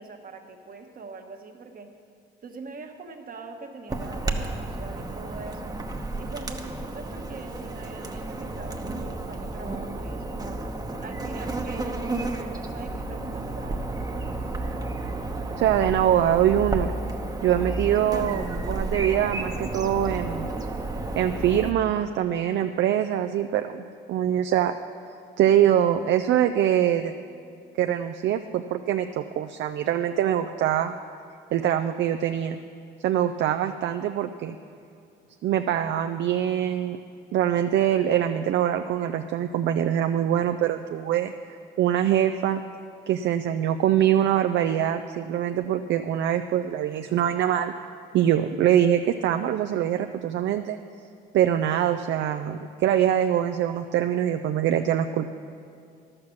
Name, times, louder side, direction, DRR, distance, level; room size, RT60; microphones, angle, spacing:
voice 1, 0.0-1.9 2.4-5.7 6.2-10.6 11.0-13.9, right 4 dB, 45° right, 5 dB, 1.2 m, -42 dB
Chirp tweet / Buzz, 3.9-21.7, right 2 dB, 20° right, 1.0 m, -32 dB
voice 2, 15.6-16.9 17.4-20.5 21.2-24.8 25.4-27.1 27.8-31.0 31.5-32.6 33.0-34.6 35.4-37.0 37.3-42.6 43.1-47.7 48.1-50.8 51.3-55.3, right 10 dB, 65° right, 7 dB, 0.4 m, -24 dB
11.5 x 6.6 x 7.1 m, 2.4 s
supercardioid pair, 70°, 20 cm